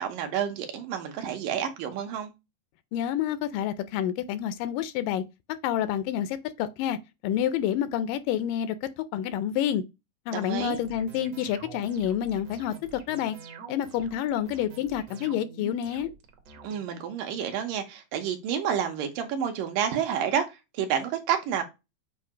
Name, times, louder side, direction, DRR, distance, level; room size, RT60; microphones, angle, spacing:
voice 1, 0.0-2.3 10.3-10.8 16.6-21.6, right 8 dB, 75° right, 2.6 m, -29 dB
voice 2, 2.9-5.2 5.6-9.8 10.3-13.4 13.7-16.1, left 10 dB, 80° left, 2.1 m, -28 dB
sound 1, 10.5-16.8, right 5 dB, 60° right, 1.8 m, -46 dB
7.6 x 2.7 x 4.8 m
omnidirectional pair, 4.0 m